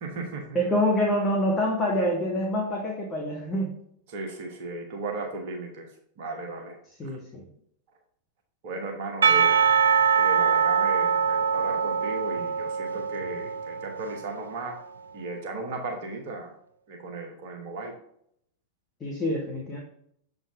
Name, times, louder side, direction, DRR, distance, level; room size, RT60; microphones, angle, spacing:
voice 1, 0.0-0.6 4.1-7.2 8.6-9.6 10.2-14.8 15.1-16.5 16.9-17.9, right 2 dB, 50° right, 2 dB, 1.2 m, -36 dB
voice 2, 0.5-3.8 6.9-7.5 19.0-19.8, equal, 20° left, -2 dB, 1.3 m, -26 dB
Percussion / Church bell, 9.2-14.5, right 6 dB, 70° right, 0.3 m, -23 dB
7.2 x 3.8 x 3.6 m, 0.69 s
figure-of-eight pair, 90°, 0 cm